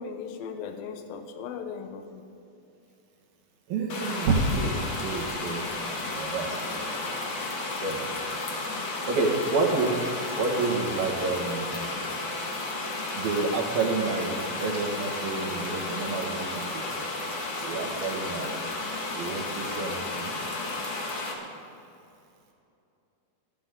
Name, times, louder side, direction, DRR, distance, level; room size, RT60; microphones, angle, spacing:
voice 1, 0.0-2.2, left 6 dB, 75° left, 6 dB, 2.8 m, -37 dB
voice 2, 3.7-4.8 5.0-5.7 6.1-6.8 7.8-8.1 9.1-9.9 10.4-11.8 13.2-16.8 17.6-18.6 19.1-20.3, right 3 dB, 75° right, 0 dB, 3.8 m, -29 dB
sound 1, 3.9-21.3, left 2 dB, 50° left, 2.8 m, -33 dB
28.0 x 12.0 x 3.9 m, 2.7 s
omnidirectional pair, 4.4 m